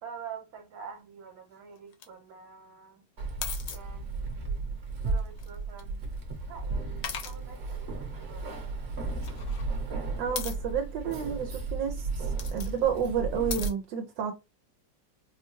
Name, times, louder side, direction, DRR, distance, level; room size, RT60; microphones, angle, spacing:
voice 1, 0.0-3.1 3.7-6.1 6.4-8.5, right 6 dB, 60° right, 1.4 m, -46 dB
sound 1, 1.8-2.1 3.4-3.8 5.2-5.8 7.0-7.4 9.2-9.6 10.4-10.6 12.1-12.7 13.5-13.7, left 8 dB, 70° left, 0.8 m, -37 dB
Keys jangling, 3.2-13.7, right 3 dB, 40° right, 1.1 m, -34 dB
voice 2, 10.2-12.1 12.5-14.3, right 7 dB, 80° right, 1.3 m, -30 dB
4.4 x 2.2 x 2.9 m
omnidirectional pair, 2.1 m